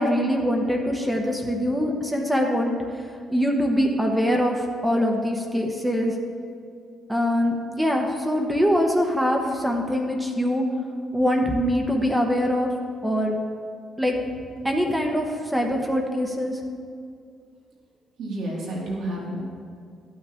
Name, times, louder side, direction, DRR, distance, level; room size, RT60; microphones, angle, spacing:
voice 1, 0.0-2.8 3.3-6.1 7.1-10.6 11.1-12.7 13.0-13.4 14.0-14.2 14.6-16.6, equal, 5° right, 1 dB, 1.0 m, -23 dB
voice 2, 18.2-19.4, right 1 dB, 75° right, -5 dB, 2.8 m, -30 dB
12.0 x 8.8 x 3.6 m, 2.3 s
cardioid pair, 90°, 0 cm